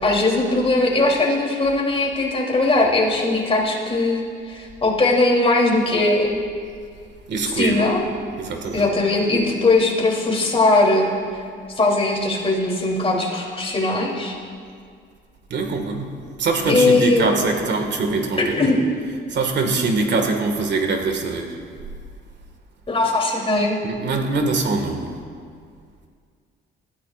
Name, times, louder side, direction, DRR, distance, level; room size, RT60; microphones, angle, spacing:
voice 1, 0.0-6.3 7.5-8.1 8.7-14.4 16.7-17.3 18.5-18.8 22.9-23.8, left 2 dB, 30° left, -2 dB, 3.2 m, -20 dB
voice 2, 7.3-7.8 8.4-8.9 15.5-16.1 16.4-18.6 19.3-21.6 23.8-25.1, right 3 dB, 60° right, 4 dB, 1.9 m, -23 dB
20.0 x 14.0 x 2.5 m, 2.1 s
cardioid pair, 90°, 20 cm